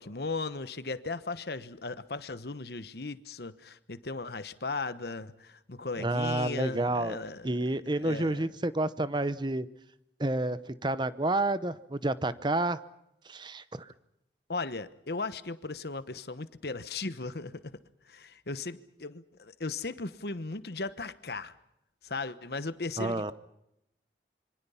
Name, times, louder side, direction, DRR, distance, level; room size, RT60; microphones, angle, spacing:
voice 1, 0.0-7.5 8.0-8.5 14.5-17.6 18.1-21.5 22.0-23.3, left 3 dB, 60° left, 13 dB, 1.1 m, -37 dB
voice 2, 6.0-7.2 7.4-9.7 10.2-12.8 13.3-13.9 23.0-23.3, right 2 dB, 25° right, 14 dB, 0.8 m, -29 dB
26.5 x 24.5 x 5.7 m, 0.82 s
head